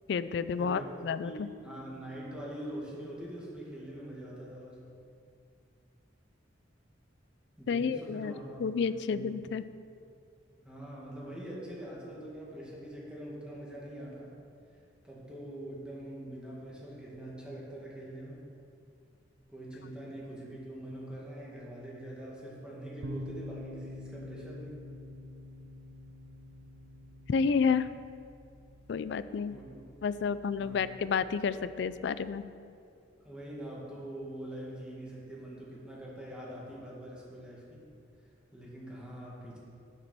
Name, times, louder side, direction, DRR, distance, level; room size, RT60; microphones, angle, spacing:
voice 1, 0.1-1.5 7.7-8.3 8.6-9.6 27.3-27.9 28.9-29.5 30.0-32.4, left 5 dB, 65° left, 14 dB, 0.3 m, -30 dB
voice 2, 1.2-4.8 7.6-9.3 10.6-14.4 15.0-18.5 19.5-24.9 29.5-29.6 30.6-30.8 33.2-37.8 38.5-39.6, right 1 dB, 5° right, -5 dB, 1.8 m, -43 dB
sound 1, 23.0-32.4, left 1 dB, 80° right, 0.6 m, -47 dB
7.5 x 6.7 x 6.1 m, 2.4 s
head